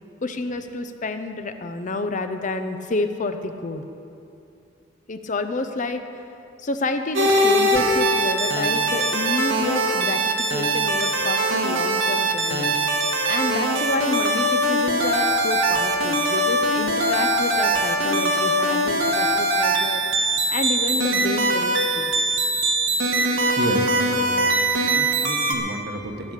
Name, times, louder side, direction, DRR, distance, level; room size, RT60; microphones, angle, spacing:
voice 1, 0.2-3.8 5.1-6.2 6.6-10.2 10.5-12.7 13.3-22.1, left 2 dB, 40° left, 8 dB, 0.7 m, -29 dB
sound 1, 7.1-25.5, right 1 dB, 85° right, 1.7 m, -22 dB
voice 2, 23.6-26.3, right 1 dB, 55° right, 4 dB, 1.3 m, -31 dB
14.0 x 10.0 x 6.6 m, 2.6 s
head